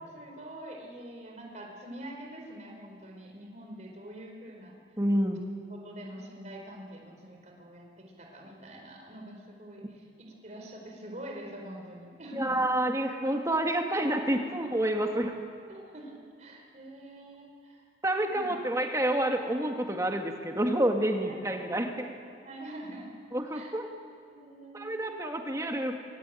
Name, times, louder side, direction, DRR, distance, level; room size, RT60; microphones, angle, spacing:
voice 1, 0.0-4.8 5.2-5.4 5.7-12.6 14.8-14.9 15.7-17.8 18.3-18.5 21.2-21.9 22.4-23.1 23.5-23.7 24.3-25.0, right 1 dB, 40° right, 1 dB, 4.3 m, -45 dB
voice 2, 5.0-5.4 12.4-15.3 18.0-22.1 23.3-23.9 24.7-26.0, right 1 dB, 15° right, 3 dB, 2.1 m, -28 dB
24.0 x 23.0 x 9.3 m, 2.2 s
head